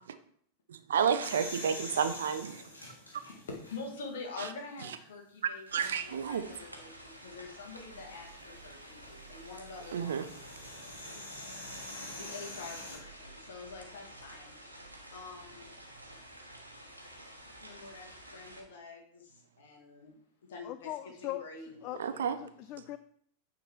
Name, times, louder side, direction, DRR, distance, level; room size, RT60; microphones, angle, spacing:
voice 1, 0.7-2.6 5.7-6.4 9.9-10.2 22.0-22.4, right 7 dB, 65° right, 10 dB, 0.6 m, -30 dB
sound 1, 1.2-4.1 4.7-4.8 5.7-5.9 8.1-13.0, left 1 dB, 80° left, 1.9 m, -45 dB
voice 2, 3.3-10.9 12.2-14.6 15.1-15.7 17.6-20.2 20.4-22.5, left 4 dB, 60° left, 1 dB, 1.9 m, -46 dB
sound 2, 5.7-18.6, right 1 dB, 85° right, 1.2 m, -51 dB
voice 3, 20.6-21.4 21.8-22.0 22.4-23.0, left 15 dB, 40° left, 13 dB, 0.3 m, -39 dB
9.1 x 4.1 x 4.5 m, 0.63 s
figure-of-eight pair, 90°, 0 cm